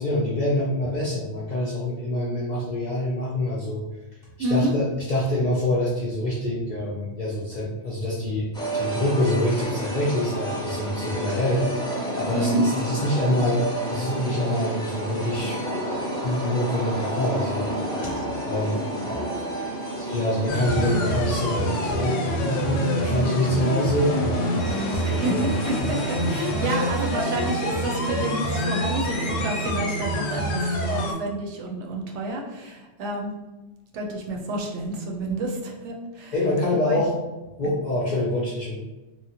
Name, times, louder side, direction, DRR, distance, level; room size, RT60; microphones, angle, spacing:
voice 1, 0.0-3.8 4.4-8.5 8.7-13.6 13.9-15.6 16.2-17.7 18.0-19.2 20.0-24.5 24.9-25.5 26.3-26.5 36.3-37.1 37.6-38.8, left 1 dB, 60° left, -6 dB, 0.5 m, -26 dB
voice 2, 4.4-4.7 12.3-12.6 25.0-25.3 25.6-33.3 33.9-36.3 36.9-37.0 37.6-37.7, right 1 dB, 75° right, 0 dB, 0.9 m, -29 dB
sound 1, 8.5-27.5, right 1 dB, 5° left, 0.5 m, -31 dB
sound 2, 20.5-31.1, equal, 85° left, 0.9 m, -26 dB
Bowed string instrument, 24.6-29.7, equal, 35° right, 0.7 m, -38 dB
3.0 x 2.0 x 2.8 m, 1.1 s
omnidirectional pair, 1.2 m